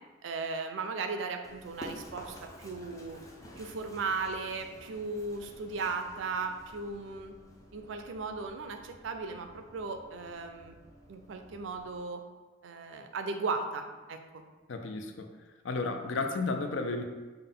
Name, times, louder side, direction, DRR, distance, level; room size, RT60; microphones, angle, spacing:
voice 1, 0.2-3.2 3.6-7.3 7.7-10.8 11.1-12.2 12.6-14.4, right 4 dB, 70° right, 6 dB, 0.4 m, -36 dB
Run, 1.4-12.0, equal, 15° left, 0.5 m, -51 dB
voice 2, 14.7-15.3 15.6-17.0, left 3 dB, 70° left, 5 dB, 0.5 m, -32 dB
5.5 x 2.2 x 3.7 m, 1.3 s
head